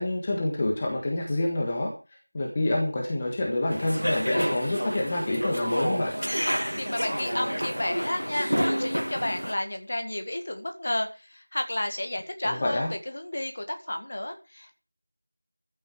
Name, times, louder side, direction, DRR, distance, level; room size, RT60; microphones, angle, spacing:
voice 1, 0.0-1.9 2.3-6.1 12.4-12.9, left 1 dB, 10° left, -1 dB, 1.5 m, -27 dB
sound 1, 3.7-9.5, equal, 80° right, 2.0 m, -29 dB
voice 2, 6.8-14.8, left 1 dB, 25° left, 6 dB, 1.8 m, -32 dB
15.0 x 12.0 x 4.8 m, 0.33 s
figure-of-eight pair, 175°, 0 cm